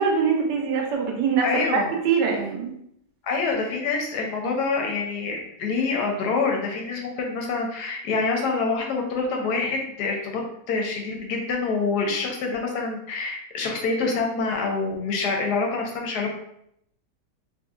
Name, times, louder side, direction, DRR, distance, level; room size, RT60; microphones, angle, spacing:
voice 1, 0.0-1.8 2.0-2.7, right 5 dB, 80° right, 1 dB, 1.3 m, -23 dB
voice 2, 1.4-1.9 3.2-10.4 10.7-16.4, left 4 dB, 75° left, 1 dB, 1.1 m, -26 dB
2.9 x 2.6 x 2.3 m, 0.73 s
omnidirectional pair, 1.9 m